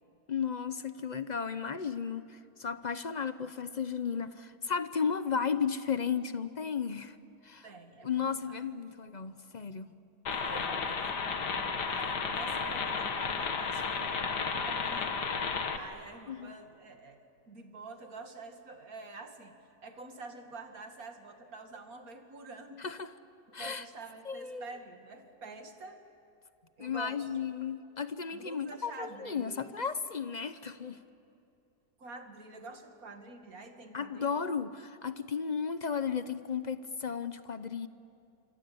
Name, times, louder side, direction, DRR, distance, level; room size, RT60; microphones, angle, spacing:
voice 1, 0.3-7.2 7.4-7.6 8.0-9.9 16.3-16.5 22.8-23.1 23.5-23.8 24.3-24.7 26.8-31.0 33.9-37.9, left 6 dB, 45° left, 12 dB, 0.6 m, -34 dB
voice 2, 7.6-8.6 10.3-11.2 11.9-14.3 14.6-19.6 19.8-22.8 23.5-26.0 26.8-27.3 28.3-29.8 32.0-34.4, right 3 dB, 60° right, 5 dB, 2.6 m, -47 dB
sound 1, 10.3-15.8, left 5 dB, 85° left, 2.1 m, -33 dB
27.5 x 25.5 x 8.6 m, 2.7 s
omnidirectional pair, 1.7 m